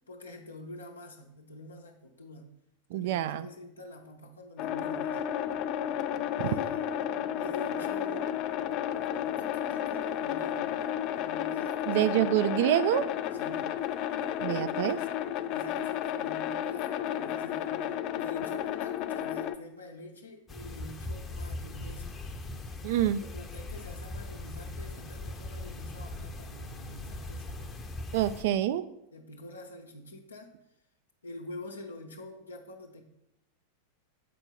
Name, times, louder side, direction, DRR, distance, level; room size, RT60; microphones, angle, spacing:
voice 1, 0.1-2.5 2.9-5.2 6.4-7.0 7.3-8.3 9.1-10.8 11.1-12.3 13.3-13.7 15.5-22.2 23.2-27.8 29.1-30.5 31.2-33.0, left 1 dB, 75° left, 1 dB, 0.8 m, -46 dB
voice 2, 2.9-3.5 11.9-13.1 14.4-15.0 22.8-23.2 28.1-28.9, right 12 dB, 50° right, 13 dB, 0.4 m, -26 dB
sound 1, 4.6-19.6, left 10 dB, 40° left, 0.4 m, -32 dB
sound 2, 20.5-28.4, left 2 dB, 20° left, 0.8 m, -40 dB
7.6 x 4.4 x 5.6 m, 0.81 s
figure-of-eight pair, 90°, 0 cm